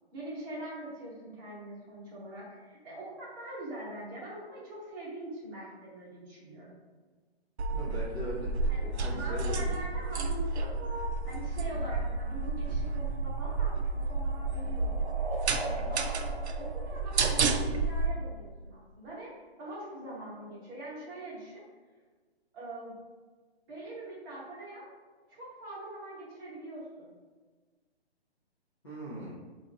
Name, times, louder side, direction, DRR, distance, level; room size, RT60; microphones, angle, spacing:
voice 1, 0.1-6.7 8.7-10.7 11.3-15.0 15.9-16.3 16.5-21.6 22.5-23.0 23.7-24.9 25.3-27.1, right 1 dB, 20° right, -7 dB, 1.0 m, -43 dB
sound 1, 7.6-18.1, right 3 dB, 85° right, 0.6 m, -31 dB
voice 2, 7.7-10.1 11.7-11.8 15.7-15.9 28.8-29.4, right 1 dB, 20° left, -9 dB, 0.5 m, -40 dB
sound 2, 13.1-17.9, right 2 dB, 55° right, 1.0 m, -42 dB
2.8 x 2.5 x 3.8 m, 1.4 s
hypercardioid pair, 165°, 33 cm